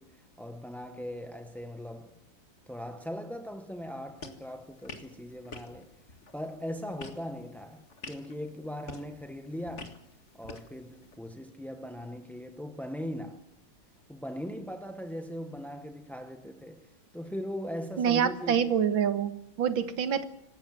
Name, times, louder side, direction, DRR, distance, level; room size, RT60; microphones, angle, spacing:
voice 1, 0.0-2.1 2.7-5.9 6.3-10.0 10.3-13.5 14.1-16.9 17.1-18.7, equal, ahead, 0.6 m, -39 dB
sound 1, 4.2-11.2, left 3 dB, 35° left, 2.2 m, -49 dB
voice 2, 18.0-20.3, right 8 dB, 80° right, 2.1 m, -26 dB
26.5 x 15.5 x 7.5 m
omnidirectional pair, 2.1 m